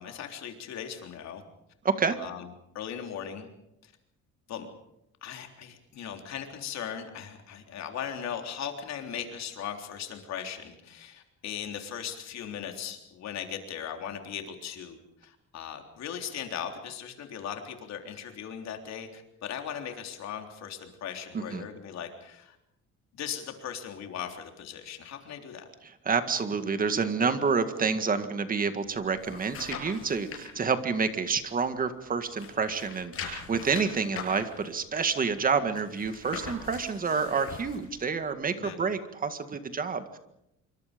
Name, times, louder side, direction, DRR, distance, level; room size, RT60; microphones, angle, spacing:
voice 1, 0.0-1.4 2.2-3.5 3.8-3.9 4.5-4.7 5.2-22.6 23.2-25.7 35.7-35.8 38.6-38.8, left 8 dB, 65° left, 4 dB, 3.7 m, -38 dB
voice 2, 1.8-2.2 21.3-21.7 25.8-40.2, right 5 dB, 30° right, 9 dB, 1.9 m, -28 dB
sound 1, 28.9-30.5 30.9-32.1 32.3-37.9 38.3-38.4, left 5 dB, 50° left, 7.9 m, -41 dB
27.0 x 24.0 x 5.3 m, 0.83 s
cardioid pair, 165°, 29 cm